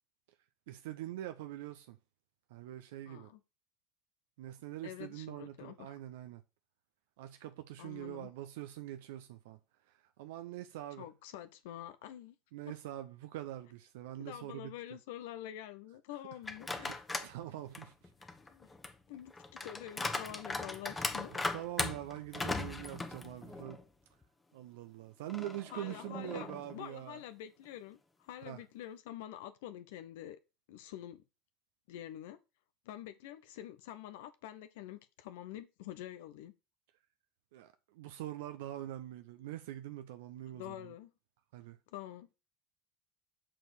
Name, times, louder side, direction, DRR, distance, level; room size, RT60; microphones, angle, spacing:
voice 1, 0.7-2.0 2.5-3.3 4.4-6.4 7.2-9.6 10.2-11.0 12.5-14.7 16.7-17.9 21.5-23.8 24.5-27.2 28.4-28.6 37.5-40.8 41.5-41.8, right 13 dB, 65° right, 0.7 m, -44 dB
voice 2, 3.1-3.4 4.8-5.9 7.8-8.3 11.0-12.4 12.7-12.8 14.2-17.0 18.5-18.7 19.1-21.5 25.7-30.4 30.7-31.2 31.9-32.4 32.8-36.5 40.5-41.1 41.9-42.3, left 12 dB, 65° left, 0.7 m, -47 dB
sound 1, 16.4-17.3 17.7-23.8 24.2-24.3 25.3-26.8, left 3 dB, 15° left, 1.1 m, -39 dB
7.5 x 4.5 x 6.7 m
figure-of-eight pair, 70°, 0 cm